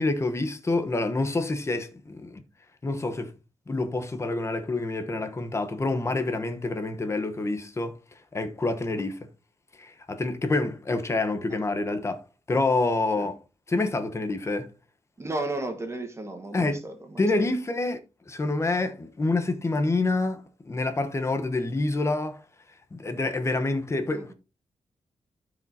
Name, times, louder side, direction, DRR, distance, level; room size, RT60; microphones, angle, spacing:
voice 1, 0.0-2.4 2.8-3.3 3.7-8.0 8.3-9.2 9.8-12.2 12.5-13.4 13.7-14.7 16.5-16.8 17.2-18.0 18.3-22.4 22.9-24.3, left 2 dB, 25° left, 1.0 m, -27 dB
voice 2, 15.2-17.2 24.1-24.3, right 2 dB, 25° right, 1.4 m, -34 dB
12.5 x 5.1 x 2.8 m
wide cardioid pair, 155°, 11 cm